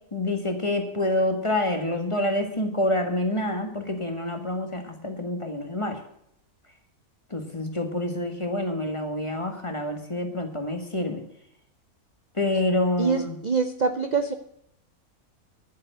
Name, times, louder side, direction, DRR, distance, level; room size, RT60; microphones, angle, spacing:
voice 1, 0.1-6.0 7.3-11.2 12.3-13.4, left 1 dB, 20° left, 5 dB, 1.8 m, -27 dB
voice 2, 13.0-14.3, right 5 dB, 45° right, 9 dB, 0.5 m, -25 dB
11.5 x 7.2 x 7.9 m, 0.73 s
omnidirectional pair, 1.6 m